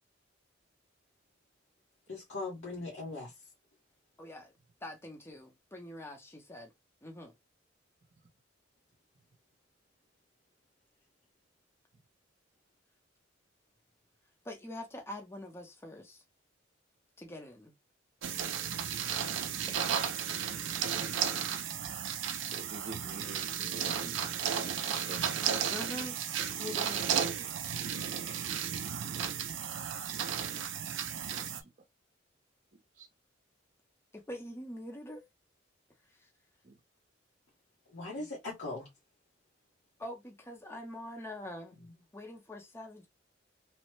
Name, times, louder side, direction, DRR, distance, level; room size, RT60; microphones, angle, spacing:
voice 1, 2.1-3.3 37.9-38.9, left 2 dB, 75° left, 1.0 m, -39 dB
voice 2, 4.2-4.5 4.8-6.7 7.0-7.3 14.4-16.2 17.2-17.7 19.4-20.2 20.4-20.9 25.7-26.2 26.6-27.0 34.1-35.3 36.1-36.3 38.2-38.3 40.0-41.8 42.1-43.1, left 1 dB, 15° left, 0.6 m, -44 dB
sound 1, 18.2-31.6, right 8 dB, 80° right, 0.5 m, -34 dB
voice 3, 22.4-25.2 27.1-27.6 30.9-31.7 33.0-33.1 36.6-36.8, right 3 dB, 45° right, 0.7 m, -48 dB
3.0 x 2.1 x 3.0 m
head